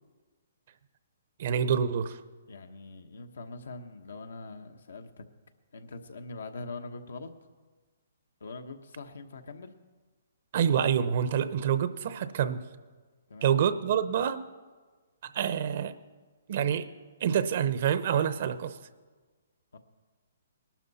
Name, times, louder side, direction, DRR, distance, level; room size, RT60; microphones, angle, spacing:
voice 1, 1.4-2.2 10.5-12.6 13.4-14.4 15.2-15.9 16.5-16.9 17.2-18.7, right 8 dB, 50° right, 13 dB, 0.8 m, -27 dB
voice 2, 2.5-5.2 5.7-7.3 8.4-9.7 13.3-13.6 19.7-19.8, left 3 dB, 80° left, 6 dB, 1.2 m, -43 dB
19.5 x 12.0 x 4.2 m, 1.4 s
hypercardioid pair, 145°, 0 cm